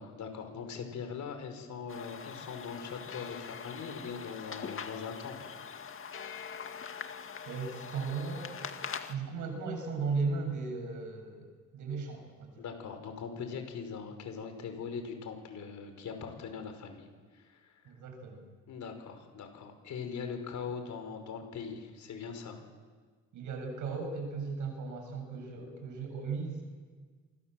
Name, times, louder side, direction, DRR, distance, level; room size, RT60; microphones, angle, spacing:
voice 1, 0.0-6.0 12.6-17.1 17.3-17.9 18.7-22.6, left 6 dB, 70° left, 6 dB, 5.4 m, -41 dB
sound 1, 1.9-9.1, left 6 dB, 45° left, 2.1 m, -43 dB
voice 2, 7.5-8.7 9.1-12.6 17.8-18.4 23.3-26.6, right 4 dB, 80° right, 4 dB, 7.4 m, -36 dB
29.0 x 24.5 x 7.8 m, 1.5 s
cardioid pair, 90°, 30 cm